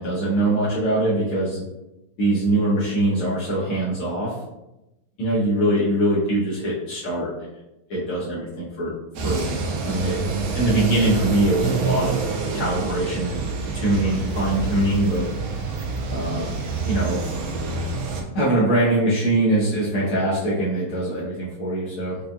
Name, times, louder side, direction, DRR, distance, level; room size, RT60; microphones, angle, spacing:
voice 1, 0.0-1.6 2.2-4.3 5.2-7.6 7.9-8.9 9.2-12.2 12.5-15.3 16.1-16.5 16.9-17.2 18.4-22.2, right 1 dB, 75° left, -9 dB, 1.8 m, -23 dB
sound 1, 9.1-18.2, right 4 dB, 90° right, 1.6 m, -27 dB
5.3 x 2.6 x 2.3 m, 0.95 s
omnidirectional pair, 2.4 m